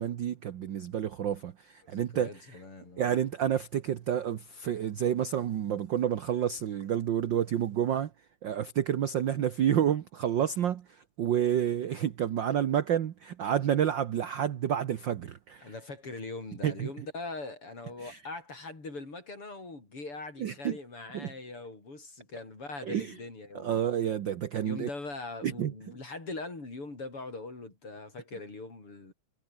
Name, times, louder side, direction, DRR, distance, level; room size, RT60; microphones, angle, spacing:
voice 1, 0.0-2.3 3.0-8.1 8.4-15.7 16.6-16.9 18.0-18.2 20.4-20.8 21.1-21.3 22.8-23.1 23.5-24.9 25.4-25.7, right 9 dB, 65° right, 1.2 m, -29 dB
voice 2, 1.8-3.1 15.6-23.9 24.6-29.1, left 3 dB, 45° left, 7.7 m, -41 dB
omnidirectional pair, 3.4 m